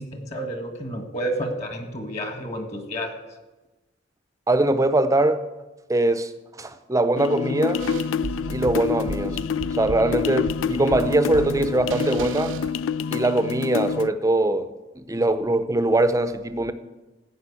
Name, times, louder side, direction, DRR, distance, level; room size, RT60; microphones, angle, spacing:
voice 1, 0.0-3.1, right 1 dB, 35° left, 1.7 m, -30 dB
voice 2, 4.5-5.4 5.9-6.3 6.6-7.8 8.5-9.4 9.7-12.5 13.1-14.7 15.0-16.7, right 2 dB, 15° right, 0.6 m, -22 dB
sound 1, 7.2-14.1, left 6 dB, 85° left, 0.3 m, -27 dB
sound 2, 7.8-13.3, right 4 dB, 90° right, 0.6 m, -35 dB
15.0 x 5.5 x 8.4 m
head